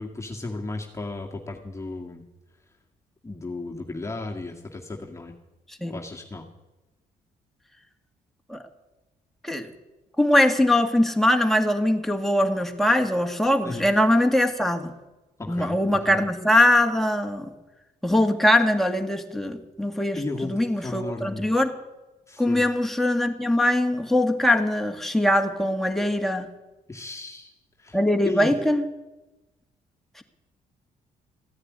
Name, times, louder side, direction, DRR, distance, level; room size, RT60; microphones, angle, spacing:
voice 1, 0.0-2.3 3.2-5.3 5.9-6.4 13.6-13.9 15.4-16.2 20.1-21.5 22.3-22.7 26.9-27.5 27.8-28.0 28.2-28.5, left 2 dB, 20° left, -1 dB, 2.0 m, -34 dB
voice 2, 10.2-14.9 15.5-17.5 18.0-21.7 22.4-26.5 27.9-28.8, left 1 dB, ahead, 4 dB, 2.1 m, -22 dB
15.0 x 9.6 x 9.5 m, 1.1 s
supercardioid pair, 70°, 16 cm